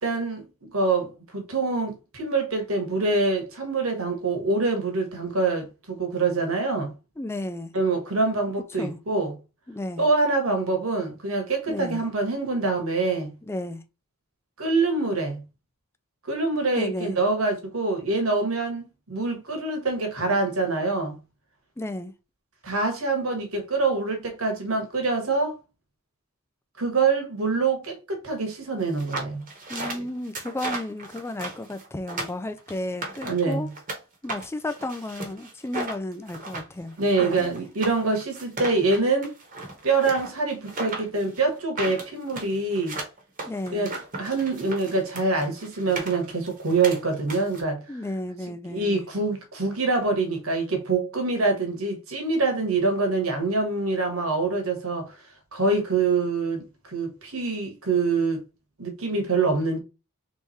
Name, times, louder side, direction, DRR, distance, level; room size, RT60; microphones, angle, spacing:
voice 1, 0.0-6.9 7.7-9.3 10.0-13.3 14.6-15.4 16.2-21.2 22.6-25.6 26.8-29.4 33.2-33.7 37.0-39.3 39.8-43.0 43.7-43.9 44.2-47.8 48.7-55.1 55.5-58.4 58.8-59.8, right 3 dB, 70° right, 1.4 m, -25 dB
voice 2, 7.2-7.7 8.8-9.0 9.7-10.1 11.7-12.0 13.5-13.8 16.8-17.1 21.8-22.1 29.7-33.7 34.2-36.9 37.2-37.5 43.5-43.9 47.9-49.0, left 1 dB, 10° left, 0.3 m, -33 dB
sound 1, 28.9-34.0 34.3-47.6, right 2 dB, 35° right, 1.2 m, -36 dB
3.5 x 3.2 x 4.1 m
head